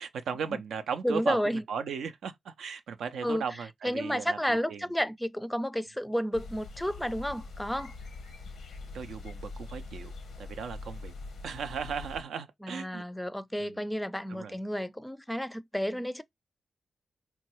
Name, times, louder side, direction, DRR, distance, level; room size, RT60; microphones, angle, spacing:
voice 1, 0.0-4.8 8.9-11.1 11.4-13.0 13.6-13.8 14.3-14.5, right 6 dB, 85° right, 0.4 m, -37 dB
voice 2, 1.0-1.6 3.2-7.9 12.6-16.2, equal, 10° left, 0.4 m, -31 dB
sound 1, 6.3-12.2, left 3 dB, 90° left, 0.7 m, -43 dB
3.8 x 2.2 x 2.9 m
supercardioid pair, 45°, 0 cm